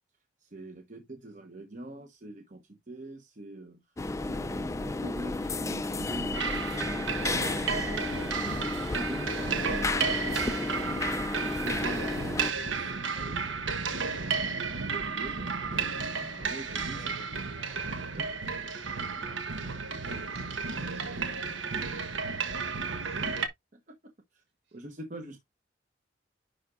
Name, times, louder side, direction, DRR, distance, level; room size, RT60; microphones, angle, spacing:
voice 1, 0.4-3.8 4.2-8.7 8.9-15.3 15.9-17.0 18.2-18.3 23.7-24.0 24.3-24.4 24.7-25.4, right 1 dB, 40° right, 1.0 m, -44 dB
sound 1, 4.0-12.5, left 2 dB, 15° left, 0.4 m, -32 dB
sound 2, 6.3-23.5, right 5 dB, 85° right, 1.2 m, -33 dB
voice 2, 15.8-18.1 18.6-21.4 22.9-23.4 24.7-24.8, right 3 dB, 70° right, 4.8 m, -55 dB
10.5 x 4.9 x 2.5 m
head